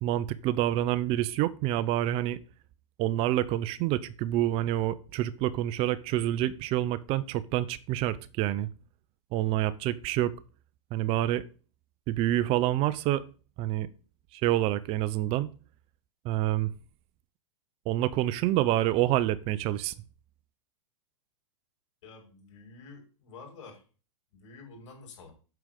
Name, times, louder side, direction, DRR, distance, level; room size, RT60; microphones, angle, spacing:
voice 1, 0.0-2.4 3.0-8.7 9.3-10.3 10.9-11.4 12.1-13.2 13.6-13.9 14.3-15.5 16.2-16.7 17.9-19.9, right 14 dB, 35° right, 0.7 m, -27 dB
voice 2, 22.0-23.8 24.3-25.3, left 4 dB, 70° left, 6.4 m, -49 dB
9.3 x 6.4 x 5.3 m
hypercardioid pair, 140°, 16 cm